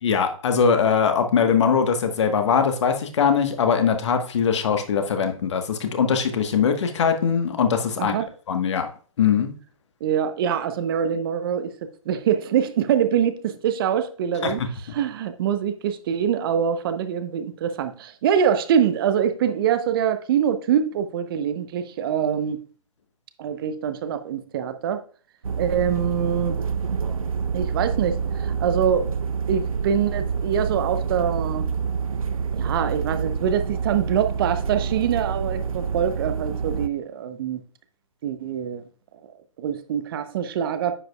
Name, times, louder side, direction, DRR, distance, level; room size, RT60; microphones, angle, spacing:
voice 1, 0.0-8.1 8.5-8.9 9.2-9.5 14.4-14.7, left 6 dB, 55° left, 1.3 m, -21 dB
voice 2, 10.0-14.6 14.9-22.6 23.4-25.0 25.6-26.6 27.5-29.1 29.5-31.7 32.5-37.6 38.2-38.8 39.6-40.9, right 8 dB, 40° right, 0.8 m, -24 dB
sound 1, 25.4-36.9, right 6 dB, 80° right, 0.5 m, -27 dB
9.9 x 7.8 x 2.3 m
figure-of-eight pair, 130°, 18 cm